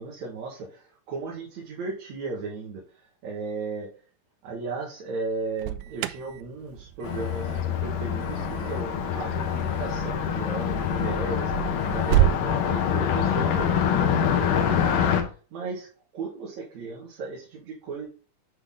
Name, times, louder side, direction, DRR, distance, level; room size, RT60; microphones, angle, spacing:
voice 1, 0.0-3.9 4.4-11.5 11.8-15.3 15.5-15.9 16.1-18.1, right 4 dB, 65° right, -2 dB, 2.8 m, -36 dB
Alarm, 5.3-12.4, right 13 dB, 80° right, 2.0 m, -30 dB
Car passing by, 7.0-15.2, left 8 dB, 85° left, 2.7 m, -25 dB
9.8 x 4.0 x 3.7 m, 0.37 s
omnidirectional pair, 3.7 m